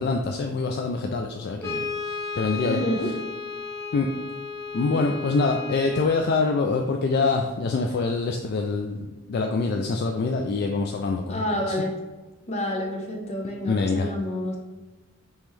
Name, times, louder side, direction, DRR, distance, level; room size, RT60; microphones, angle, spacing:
voice 1, 0.0-2.8 3.9-4.1 4.7-11.7 13.6-14.1, left 4 dB, 50° left, 3 dB, 0.3 m, -25 dB
Brass instrument, 1.6-6.2, left 5 dB, 10° left, 1.1 m, -34 dB
voice 2, 2.6-3.1 11.3-11.9 12.5-14.6, left 1 dB, 30° left, 0 dB, 0.8 m, -28 dB
5.3 x 3.0 x 3.2 m, 1.2 s
head